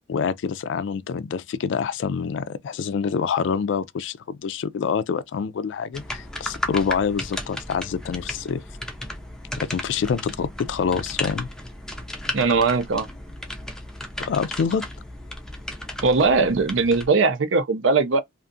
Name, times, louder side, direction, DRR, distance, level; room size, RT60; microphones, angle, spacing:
voice 1, 0.1-8.6 9.6-11.5 14.2-14.8, left 6 dB, 65° left, 0.3 m, -26 dB
sound 1, 5.9-17.1, left 1 dB, 5° left, 0.4 m, -34 dB
voice 2, 12.3-13.1 16.0-18.2, right 4 dB, 70° right, 0.5 m, -20 dB
2.4 x 2.4 x 2.5 m
head